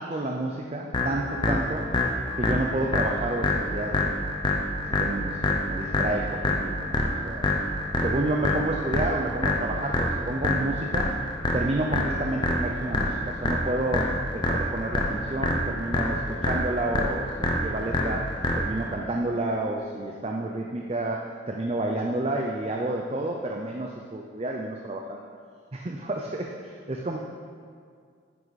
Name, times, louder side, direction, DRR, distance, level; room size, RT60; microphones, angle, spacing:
voice 1, 0.0-1.8 2.4-4.1 4.8-7.0 7.2-7.5 8.0-11.1 11.5-18.2 18.6-25.2 25.7-27.2, right 1 dB, 30° right, 0 dB, 0.5 m, -30 dB
sound 1, 0.9-18.9, left 1 dB, 25° left, 0.8 m, -27 dB
9.5 x 7.9 x 4.1 m, 2.1 s
head